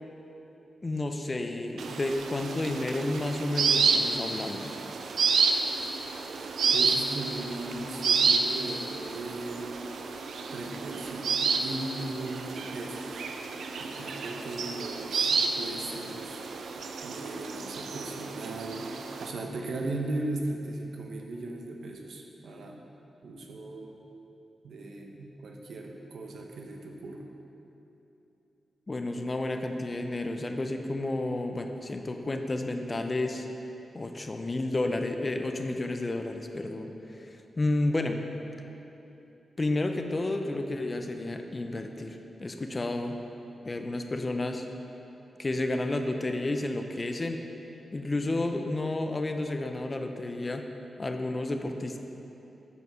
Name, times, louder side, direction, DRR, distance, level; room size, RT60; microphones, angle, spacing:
voice 1, 0.8-4.7 28.9-33.5 33.9-37.3 37.6-38.2 39.6-43.2 43.6-44.7 45.4-47.4 47.9-50.6 51.0-52.0, left 2 dB, 25° left, 5 dB, 0.4 m, -31 dB
sound 1, 1.8-19.3, right 5 dB, 85° right, 0.4 m, -30 dB
voice 2, 6.4-9.7 10.5-13.3 13.8-16.4 17.0-18.9 19.2-22.8 23.2-24.0 24.6-27.3, right 2 dB, 70° right, 1 dB, 0.8 m, -38 dB
8.1 x 4.7 x 5.5 m, 3.0 s
wide cardioid pair, 170°, 0 cm